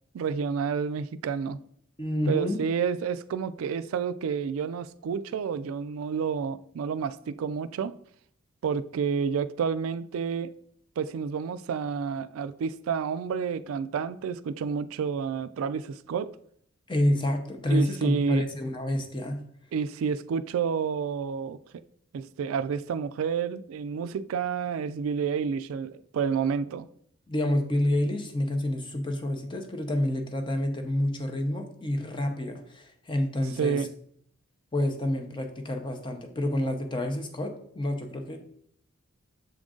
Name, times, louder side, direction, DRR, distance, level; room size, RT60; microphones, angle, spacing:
voice 1, 0.1-1.6 2.3-7.9 8.6-10.5 11.0-16.4 17.7-18.4 19.7-21.6 22.1-26.9 33.6-33.9, right 6 dB, 85° right, 0.3 m, -29 dB
voice 2, 2.0-2.6 16.9-19.4 27.3-33.8 34.7-38.4, left 1 dB, 25° left, 0.6 m, -28 dB
6.9 x 3.7 x 3.7 m
head